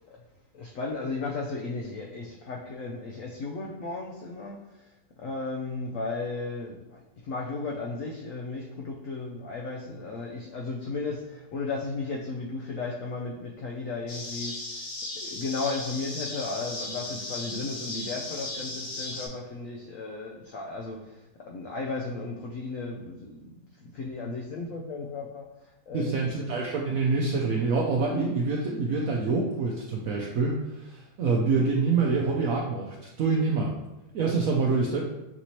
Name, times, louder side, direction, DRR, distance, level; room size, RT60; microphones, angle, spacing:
voice 1, 0.5-4.9 5.2-14.8 15.1-23.5 23.8-25.5 25.9-26.6, left 3 dB, 90° left, -1 dB, 0.7 m, -35 dB
sound 1, 14.1-19.3, left 2 dB, 60° left, 1.3 m, -36 dB
voice 2, 25.9-33.7 34.1-35.2, right 4 dB, 80° right, -2 dB, 0.7 m, -26 dB
5.9 x 2.7 x 3.0 m, 1.0 s
omnidirectional pair, 2.0 m